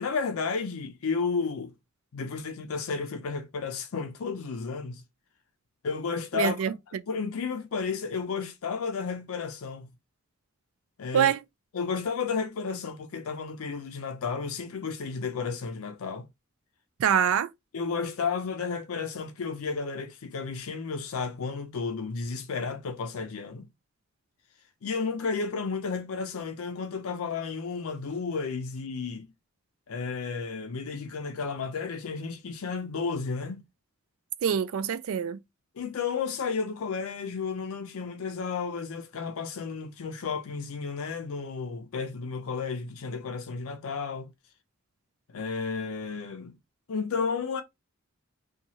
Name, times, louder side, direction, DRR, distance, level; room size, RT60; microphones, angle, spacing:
voice 1, 0.0-1.7 2.1-5.0 5.8-6.7 7.1-9.9 11.0-11.3 11.7-16.3 17.7-23.7 24.8-29.3 29.9-33.6 35.8-44.3 45.3-46.6 46.9-47.6, left 5 dB, 75° left, 0.5 m, -32 dB
voice 2, 6.3-6.7 11.1-11.4 17.0-17.5 34.4-35.4, right 8 dB, 70° right, 0.3 m, -25 dB
2.9 x 2.3 x 2.7 m
head